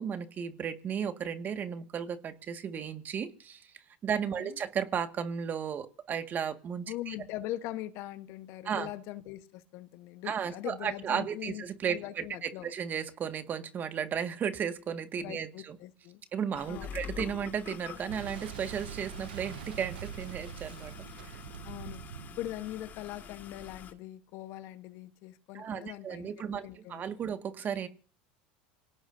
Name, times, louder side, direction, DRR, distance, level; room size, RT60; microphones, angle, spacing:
voice 1, 0.0-3.7 4.0-7.1 8.7-8.9 10.3-15.8 16.3-20.9 21.2-21.3 25.5-27.9, right 7 dB, 35° right, 1.9 m, -34 dB
voice 2, 6.9-12.7 15.2-16.2 16.7-17.0 21.6-22.0 22.4-27.2, left 14 dB, 60° left, 1.2 m, -41 dB
sound 1, 16.5-23.9, left 8 dB, 40° left, 2.2 m, -46 dB
Boom, 18.1-23.7, right 11 dB, 80° right, 0.7 m, -44 dB
27.0 x 17.5 x 2.7 m
hypercardioid pair, 90°, 5 cm